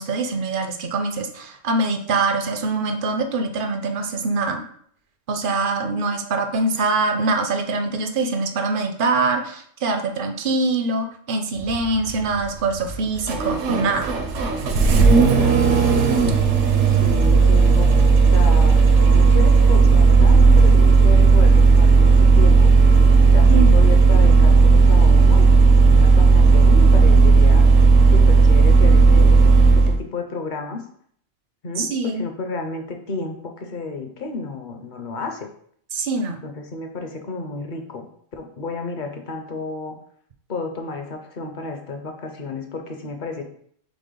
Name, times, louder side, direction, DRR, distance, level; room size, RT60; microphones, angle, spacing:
voice 1, 0.0-4.6 5.3-14.1 23.5-23.8 31.8-32.3 35.9-36.4, right 3 dB, 60° right, 6 dB, 0.6 m, -24 dB
Engine starting, 11.6-30.0, right 4 dB, 75° right, 0.9 m, -13 dB
voice 2, 15.4-16.1 16.9-22.7 23.3-25.5 25.8-27.6 28.1-30.8 31.6-35.5 36.4-38.1 38.3-39.9 40.5-43.4, left 3 dB, 50° left, 4 dB, 0.7 m, -31 dB
4.1 x 3.3 x 3.8 m, 0.63 s
omnidirectional pair, 1.2 m